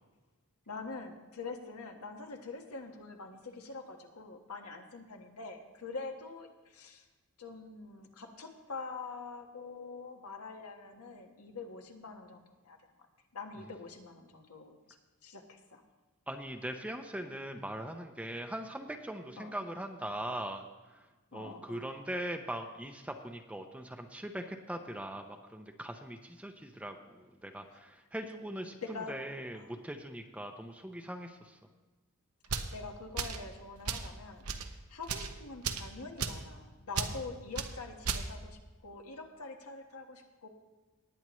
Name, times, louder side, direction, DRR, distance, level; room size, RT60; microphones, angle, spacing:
voice 1, 0.7-7.1 7.4-12.8 13.3-14.8 15.2-15.8 19.4-19.5 21.3-21.9 28.9-29.2 29.5-29.7 32.7-34.5 34.9-40.5, left 4 dB, 90° left, 3 dB, 1.4 m, -45 dB
voice 2, 16.3-20.6 20.9-21.1 21.3-31.6, right 1 dB, 5° right, 5 dB, 0.6 m, -41 dB
sound 1, 32.4-32.7 33.2-33.4 33.9-34.1 34.4-34.7 35.0-35.3 35.6-35.9 36.2-36.4 36.9-37.1 37.6-37.7 38.0-38.3, right 6 dB, 85° right, 0.8 m, -34 dB
19.0 x 8.7 x 3.1 m, 1.2 s
head